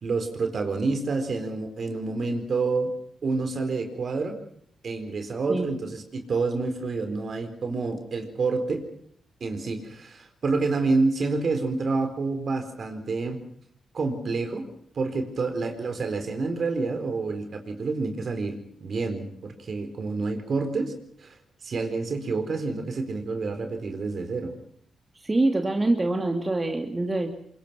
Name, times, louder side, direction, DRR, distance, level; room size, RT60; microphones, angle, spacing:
voice 1, 0.0-2.9 3.2-4.3 4.8-8.8 9.4-13.4 13.9-14.7 14.9-20.9 21.2-21.4 21.6-24.5, right 3 dB, 55° right, 7 dB, 4.4 m, -28 dB
voice 2, 25.2-27.3, right 2 dB, 25° right, 4 dB, 2.7 m, -25 dB
25.0 x 22.5 x 6.2 m, 0.67 s
cardioid pair, 60°, 0 cm